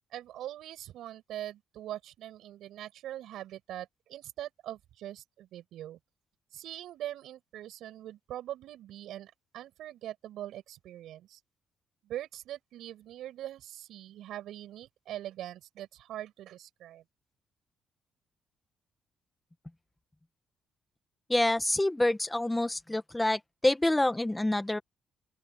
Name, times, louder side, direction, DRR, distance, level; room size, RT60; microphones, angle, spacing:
voice 1, 0.1-6.0 6.5-11.4 12.0-17.0, right 12 dB, 80° right, 7.2 m, -42 dB
voice 2, 21.3-24.8, left 1 dB, 10° left, 1.5 m, -27 dB
open air
cardioid pair, 90°, 0 cm